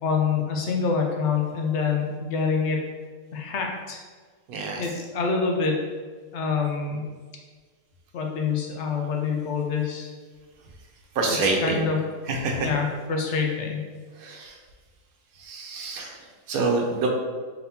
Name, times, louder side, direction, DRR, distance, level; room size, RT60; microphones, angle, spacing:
voice 1, 0.0-2.9 3.3-4.0 4.8-5.8 6.3-7.1 8.1-10.1 11.6-12.0 12.6-13.9, left 5 dB, 65° left, 1 dB, 0.8 m, -26 dB
voice 2, 4.5-4.9 11.1-11.9 12.3-12.7 14.1-14.6 15.3-17.1, right 3 dB, 90° right, 1 dB, 1.2 m, -27 dB
4.0 x 3.5 x 2.8 m, 1.5 s
omnidirectional pair, 1.5 m